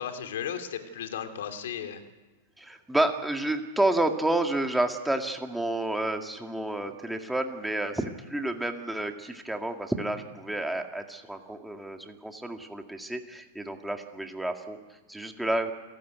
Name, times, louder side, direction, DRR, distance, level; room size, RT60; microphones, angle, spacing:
voice 1, 0.0-2.0, left 8 dB, 80° left, 7 dB, 3.0 m, -35 dB
voice 2, 2.6-15.7, right 1 dB, 5° right, 4 dB, 2.1 m, -30 dB
28.5 x 16.0 x 9.4 m, 1.3 s
supercardioid pair, 145°, 0 cm